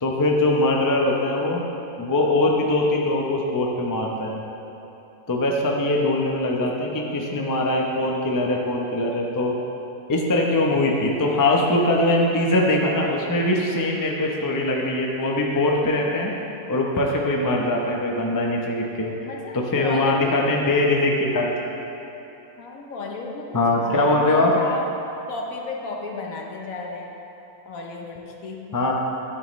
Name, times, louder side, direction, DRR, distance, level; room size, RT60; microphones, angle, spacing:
voice 1, 0.0-1.6 2.0-4.4 5.3-9.6 10.1-16.3 16.7-19.1 19.5-21.5 23.5-24.5 28.7-28.9, left 2 dB, 20° left, -1 dB, 0.6 m, -22 dB
voice 2, 19.2-20.4 22.6-24.9 25.3-27.2 27.6-28.8, left 3 dB, 65° left, 1 dB, 1.3 m, -34 dB
11.5 x 9.0 x 3.2 m, 3.0 s
omnidirectional pair, 1.6 m